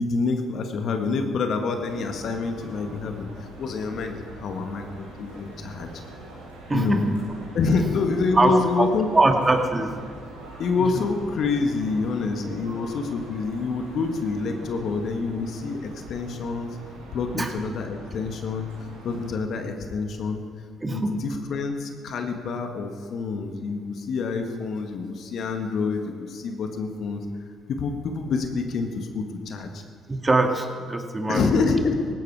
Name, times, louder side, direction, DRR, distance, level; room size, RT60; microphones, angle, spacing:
voice 1, 0.0-5.9 6.7-7.0 7.5-9.1 10.6-16.8 17.1-18.7 19.0-20.4 20.9-27.2 27.7-29.8 31.3-32.1, left 4 dB, 60° left, 5 dB, 1.8 m, -27 dB
sound 1, 1.8-19.3, right 1 dB, 90° right, 4.7 m, -43 dB
voice 2, 6.7-7.3 8.4-8.9 9.1-10.0 10.8-11.0 17.3-17.5 20.8-21.2 30.1-31.5, right 2 dB, 25° right, 4 dB, 2.2 m, -23 dB
18.5 x 16.0 x 4.9 m, 2.1 s
hypercardioid pair, 50°, 0 cm